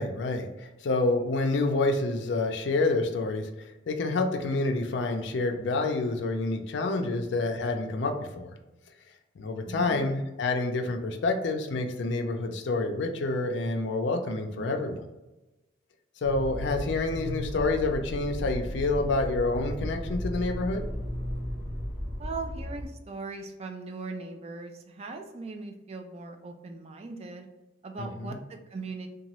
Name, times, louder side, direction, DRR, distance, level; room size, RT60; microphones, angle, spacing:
voice 1, 0.0-8.5 9.4-15.0 16.2-20.8 28.0-28.4, left 2 dB, 75° left, 5 dB, 0.4 m, -28 dB
voice 2, 9.7-10.1 14.6-14.8 22.2-27.5 27.8-29.1, right 3 dB, 35° right, 5 dB, 0.3 m, -39 dB
Motor vehicle (road), 16.2-22.9, equal, 5° left, 1.1 m, -35 dB
2.9 x 2.2 x 2.9 m, 1.0 s
head